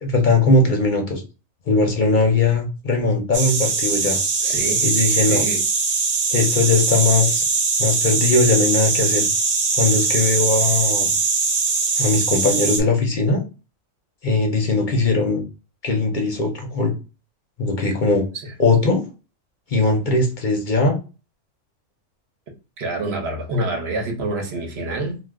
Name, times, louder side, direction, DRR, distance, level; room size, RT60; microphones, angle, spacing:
voice 1, 0.0-1.2 1.7-4.2 4.8-5.4 6.3-7.4 7.8-9.3 9.8-11.1 12.0-13.4 14.2-15.4 15.8-16.9 17.6-18.2 18.6-19.0 19.7-21.0, left 3 dB, 50° left, 0.7 m, -19 dB
sound 1, 3.3-12.8, right 4 dB, 80° right, 1.2 m, -21 dB
voice 2, 4.4-4.9 5.3-5.6 18.3-18.5 22.8-25.2, right 1 dB, 55° right, 1.0 m, -27 dB
2.4 x 2.4 x 3.4 m
omnidirectional pair, 1.4 m